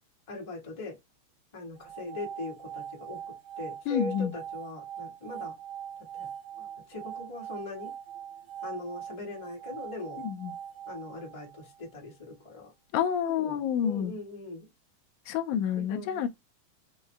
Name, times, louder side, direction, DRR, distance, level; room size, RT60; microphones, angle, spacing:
voice 1, 0.3-1.0 1.5-5.5 6.1-6.3 6.6-7.9 8.6-10.2 10.9-12.7 13.2-14.7 15.7-16.2, left 2 dB, 25° left, 0.6 m, -41 dB
sound 1, 1.8-11.9, right 9 dB, 75° right, 2.4 m, -42 dB
voice 2, 3.9-4.3 10.2-10.5 12.9-14.1 15.3-16.3, left 9 dB, 80° left, 1.9 m, -28 dB
5.5 x 2.1 x 3.3 m
omnidirectional pair, 3.5 m